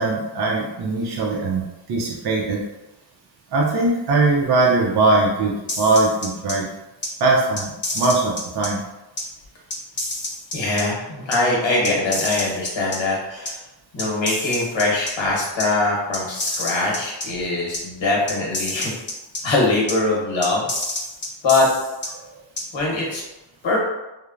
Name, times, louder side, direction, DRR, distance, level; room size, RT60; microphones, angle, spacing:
voice 1, 0.0-1.6 1.9-2.6 3.5-6.7 7.2-8.8, right 3 dB, 60° right, -3 dB, 0.6 m, -20 dB
sound 1, 5.7-6.5 7.0-7.1 7.6-8.7 9.2-9.3 9.7-10.8 11.3-11.4 11.8-13.0 13.5-13.6 14.0-15.1 15.6-15.7 16.1-17.3 17.7-17.8 18.3-19.4 19.9-20.0 20.4-22.1 22.6-22.7, left 2 dB, 25° left, 0.4 m, -28 dB
voice 2, 10.5-13.6 13.9-18.9 19.4-20.6 21.4-21.7 22.7-23.2 23.6-23.8, left 2 dB, 75° left, -3 dB, 1.1 m, -22 dB
3.1 x 2.1 x 2.4 m, 0.99 s
wide cardioid pair, 100°, 45 cm